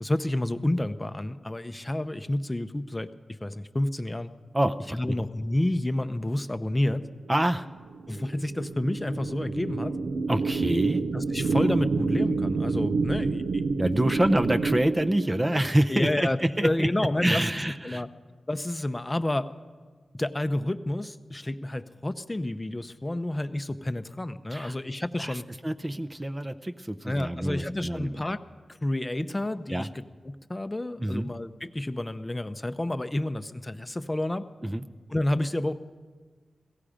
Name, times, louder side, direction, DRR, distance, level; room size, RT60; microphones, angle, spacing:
voice 1, 0.0-3.1 3.4-4.3 4.9-7.0 8.1-10.0 11.1-13.6 15.9-18.1 18.5-19.5 20.1-25.4 27.1-28.4 28.8-29.9 30.3-34.5 35.1-35.7, left 1 dB, 20° left, 10 dB, 0.6 m, -29 dB
voice 2, 4.5-5.1 7.3-7.7 10.3-11.0 13.8-16.9 17.2-18.0 24.5-24.8 25.2-28.2 29.7-29.9 31.0-31.3 34.6-34.8, right 1 dB, 20° right, 9 dB, 0.6 m, -26 dB
sound 1, 7.0-15.8, right 4 dB, 85° right, 0.7 m, -28 dB
17.0 x 15.0 x 5.0 m, 1.4 s
cardioid pair, 70°, 0 cm